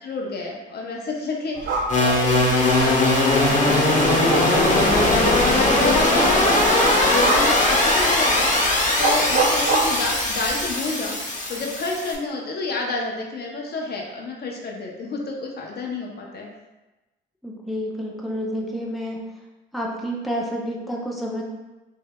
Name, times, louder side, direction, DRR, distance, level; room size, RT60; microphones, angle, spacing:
voice 1, 0.0-6.7 7.1-11.2 11.5-16.5, left 3 dB, 55° left, 0 dB, 0.7 m, -30 dB
sound 1, 1.6-10.7, right 3 dB, 65° right, 0.7 m, -27 dB
sound 2, 1.9-12.1, left 2 dB, 40° left, 1.1 m, -20 dB
voice 2, 17.4-19.3 19.7-21.4, equal, ahead, -2 dB, 0.6 m, -29 dB
5.4 x 2.6 x 2.2 m, 1.1 s
cardioid pair, 90°, 20 cm